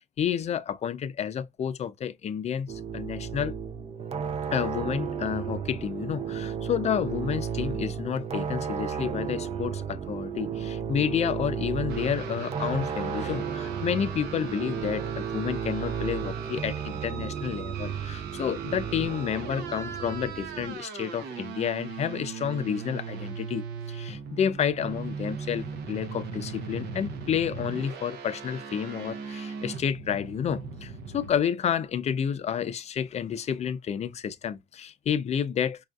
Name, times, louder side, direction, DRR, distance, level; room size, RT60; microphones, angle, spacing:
voice 1, 0.2-3.5 4.5-35.8, left 8 dB, 40° left, 0.5 m, -30 dB
sound 1, 2.7-20.7, right 7 dB, 40° right, 0.5 m, -33 dB
sound 2, 11.9-31.4, right 6 dB, 75° right, 0.9 m, -39 dB
5.4 x 2.4 x 2.3 m
cardioid pair, 110°, 17 cm